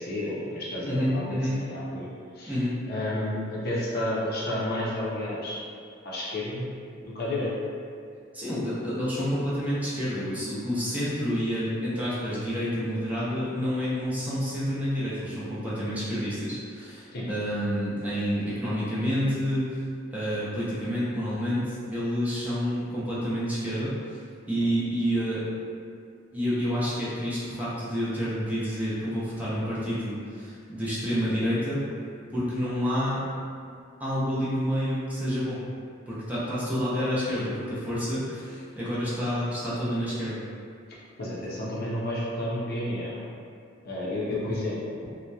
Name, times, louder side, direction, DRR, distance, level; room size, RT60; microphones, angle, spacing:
voice 1, 0.0-2.1 2.3-2.6 2.9-5.6 6.0-6.7 7.0-7.5 17.1-17.2 41.2-43.2 43.8-44.9, left 1 dB, 50° left, -6 dB, 0.5 m, -31 dB
voice 2, 0.8-1.6 2.5-2.8 8.3-19.8 20.1-24.2 24.5-25.4 26.3-31.8 32.3-33.3 34.0-35.6 36.1-40.4, equal, 10° right, -10 dB, 0.5 m, -29 dB
2.7 x 2.0 x 2.2 m, 2.3 s
head